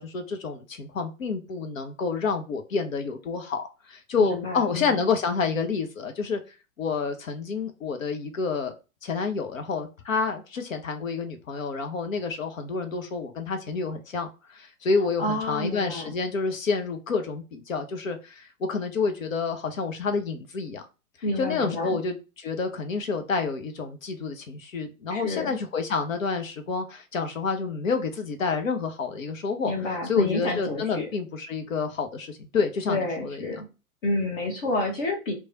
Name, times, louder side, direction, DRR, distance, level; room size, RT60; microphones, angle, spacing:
voice 1, 0.0-6.4 6.8-8.7 9.0-20.8 21.4-29.7 30.0-33.5, left 4 dB, 60° left, 6 dB, 0.7 m, -29 dB
voice 2, 4.2-5.0 15.2-16.1 21.2-22.0 25.1-25.5 29.6-31.1 32.9-33.7 34.0-35.3, left 2 dB, 35° left, 1 dB, 1.0 m, -29 dB
3.1 x 2.3 x 3.9 m, 0.30 s
figure-of-eight pair, 105°, 44 cm